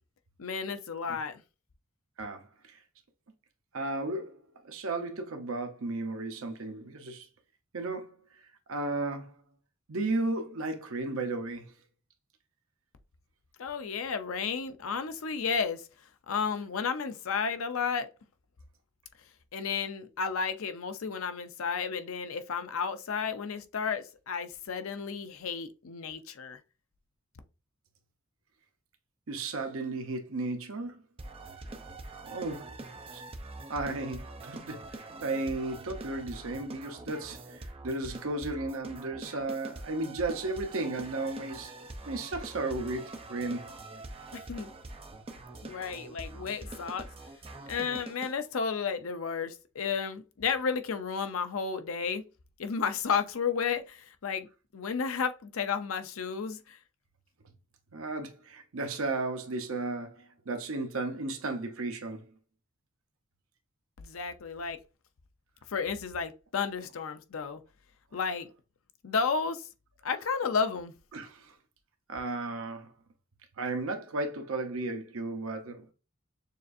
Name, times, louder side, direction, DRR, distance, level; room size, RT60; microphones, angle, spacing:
voice 1, 0.4-1.4 13.6-15.9 16.3-18.1 19.5-26.6 44.3-44.7 45.6-47.1 47.6-52.2 52.6-54.5 54.7-56.8 64.0-64.8 65.7-67.6 68.1-68.5 69.0-69.7 70.0-70.9, left 6 dB, 65° left, 0.5 m, -32 dB
voice 2, 2.2-2.8 3.7-4.4 4.6-7.3 7.7-8.2 8.7-9.3 9.9-11.7 29.3-31.0 32.3-32.7 33.1-33.2 33.7-41.7 42.1-43.7 57.9-62.2 71.1-71.5 72.1-72.9 73.6-75.9, right 2 dB, 65° right, 0.8 m, -34 dB
sound 1, 31.2-48.3, right 2 dB, 25° right, 0.5 m, -44 dB
6.6 x 2.5 x 2.6 m
head